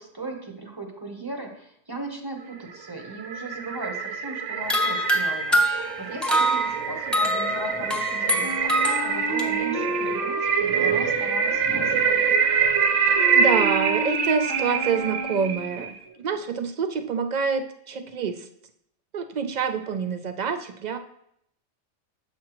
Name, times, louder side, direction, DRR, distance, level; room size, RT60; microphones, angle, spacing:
voice 1, 0.0-12.2 15.7-16.1, right 2 dB, 20° right, 2 dB, 0.8 m, -38 dB
sound 1, 2.6-16.0, right 6 dB, 85° right, 0.9 m, -26 dB
sound 2, 4.7-9.4, equal, ahead, 0.5 m, -25 dB
Wind instrument woodwind instrument, 8.4-15.7, right 3 dB, 50° right, 1.3 m, -30 dB
voice 2, 13.3-18.5 19.1-21.0, right 6 dB, 65° right, 7 dB, 0.4 m, -27 dB
7.3 x 5.8 x 2.9 m, 0.72 s
omnidirectional pair, 1.2 m